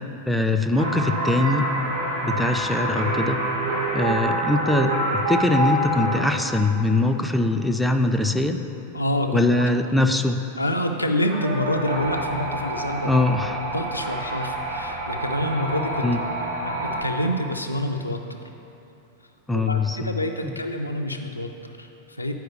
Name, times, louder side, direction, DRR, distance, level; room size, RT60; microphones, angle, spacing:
voice 1, 0.3-1.6 2.2-3.4 3.9-8.6 9.3-10.4 13.0-13.6 16.0-16.2 19.5-20.5, left 2 dB, 5° left, 4 dB, 0.3 m, -22 dB
sound 1, 0.7-6.9 11.3-17.0, right 1 dB, 70° right, 1.3 m, -27 dB
voice 2, 8.9-9.7 10.6-13.2 13.7-16.1 16.6-18.4 19.5-22.3, left 1 dB, 85° left, 4 dB, 0.4 m, -27 dB
10.0 x 4.6 x 3.1 m, 2.9 s
figure-of-eight pair, 90°, 0 cm